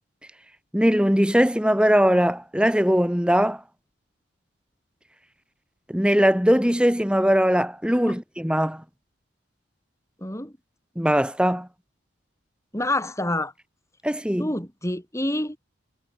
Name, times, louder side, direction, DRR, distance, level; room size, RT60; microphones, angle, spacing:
voice 1, 0.7-3.6 5.9-8.8 11.0-11.7 14.0-14.5, equal, 5° right, 2.4 m, -20 dB
voice 2, 10.2-10.5 12.7-13.5 14.4-15.6, left 1 dB, 15° left, 6.1 m, -27 dB
head